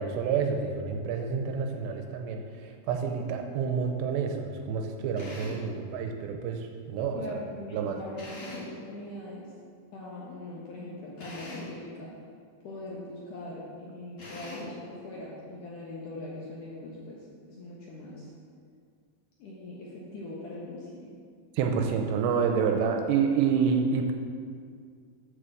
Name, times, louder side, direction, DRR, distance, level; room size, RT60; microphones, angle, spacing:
voice 1, 0.0-7.4 7.7-8.0 21.6-24.1, right 6 dB, 80° right, 4 dB, 2.7 m, -28 dB
Drill, 5.2-5.7 8.2-8.8 11.2-11.8 14.2-14.8, left 2 dB, 40° left, 1.9 m, -42 dB
voice 2, 7.1-9.5 9.9-12.1 12.6-18.3 19.4-21.1, left 1 dB, 65° left, -5 dB, 2.1 m, -41 dB
7.5 x 6.8 x 7.4 m, 2.2 s
omnidirectional pair, 5.2 m